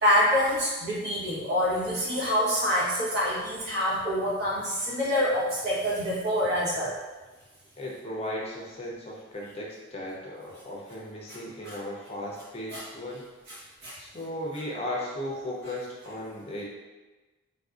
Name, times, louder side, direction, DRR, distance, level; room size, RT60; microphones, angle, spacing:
voice 1, 0.0-6.9 11.3-11.4 11.6-11.8 12.7-12.9 13.5-14.0, equal, 55° right, -7 dB, 1.0 m, -26 dB
voice 2, 7.8-13.3 14.0-16.6, left 1 dB, 30° left, -3 dB, 0.5 m, -36 dB
3.4 x 2.5 x 2.4 m, 1.2 s
head